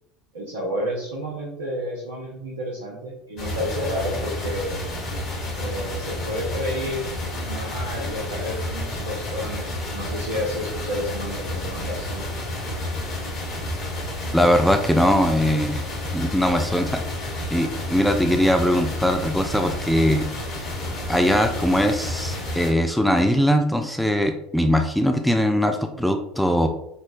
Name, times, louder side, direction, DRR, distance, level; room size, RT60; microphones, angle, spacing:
voice 1, 0.3-4.8 5.6-7.1 7.4-12.3, equal, 85° right, -3 dB, 0.7 m, -30 dB
sound 1, 3.4-22.7, left 1 dB, 55° left, 1.3 m, -30 dB
voice 2, 14.3-15.8 16.1-20.3 21.1-26.7, equal, ahead, 4 dB, 0.4 m, -21 dB
5.3 x 2.1 x 2.6 m, 0.77 s
hypercardioid pair, 70°, 0 cm